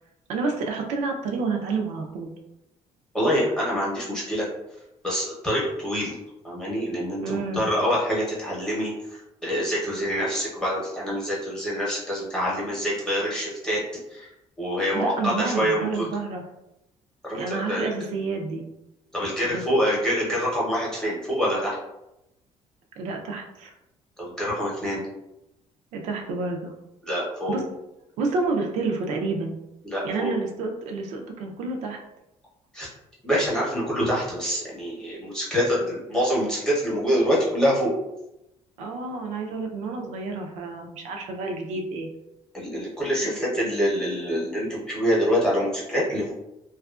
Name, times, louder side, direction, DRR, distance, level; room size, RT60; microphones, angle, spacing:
voice 1, 0.3-2.3 7.2-7.7 14.9-16.5 17.3-18.6 19.4-19.6 23.0-23.7 25.9-26.7 27.5-27.6 28.2-29.5 30.0-32.0 38.8-42.1, right 3 dB, 80° right, 2 dB, 0.4 m, -29 dB
voice 2, 3.1-4.5 5.0-6.1 6.4-8.9 9.4-13.8 14.1-14.3 14.6-16.1 17.2-17.9 19.1-21.8 24.2-25.0 27.1-27.6 29.8-30.3 32.7-32.9 33.2-37.9 42.5-46.3, equal, 5° left, -7 dB, 0.8 m, -25 dB
2.7 x 2.3 x 2.3 m, 0.90 s
cardioid pair, 170°, 12 cm